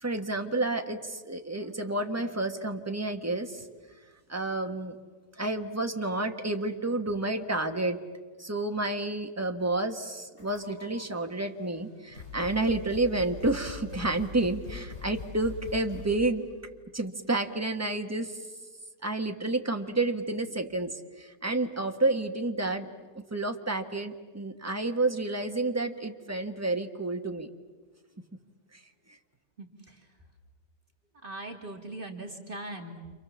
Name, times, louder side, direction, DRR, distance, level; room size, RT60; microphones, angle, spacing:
voice 1, 0.0-3.6 4.3-5.0 5.4-8.0 8.4-16.4 16.9-18.4 19.0-22.9 23.1-27.5, right 2 dB, 10° right, 5 dB, 1.3 m, -30 dB
sound 1, 10.4-11.0 11.8-11.9 12.1-16.3, left 4 dB, 45° left, 4.3 m, -42 dB
voice 2, 29.6-30.2 31.2-33.1, right 2 dB, 30° right, 2 dB, 2.5 m, -41 dB
29.0 x 27.5 x 7.3 m, 1.4 s
omnidirectional pair, 1.8 m